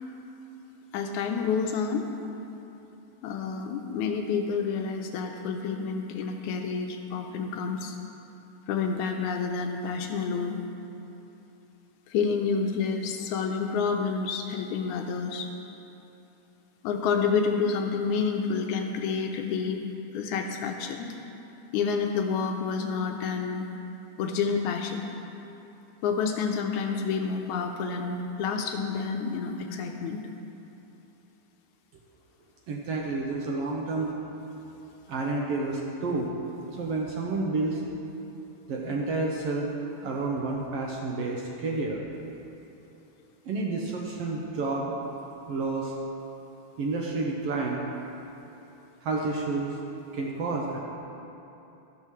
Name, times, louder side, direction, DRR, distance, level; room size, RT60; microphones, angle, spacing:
voice 1, 0.9-2.1 3.2-8.0 8.7-10.6 12.1-15.5 16.8-19.8 20.1-21.2 21.7-23.7 24.2-25.1 26.0-30.3, left 5 dB, 80° left, 4 dB, 1.9 m, -29 dB
voice 2, 32.7-34.2 35.1-36.4 36.8-37.8 38.7-39.7 40.0-42.0 43.4-44.9 45.5-46.0 46.8-47.8 49.0-49.8 50.1-50.8, right 3 dB, 75° right, -1 dB, 1.4 m, -30 dB
13.0 x 12.0 x 3.1 m, 3.0 s
omnidirectional pair, 3.7 m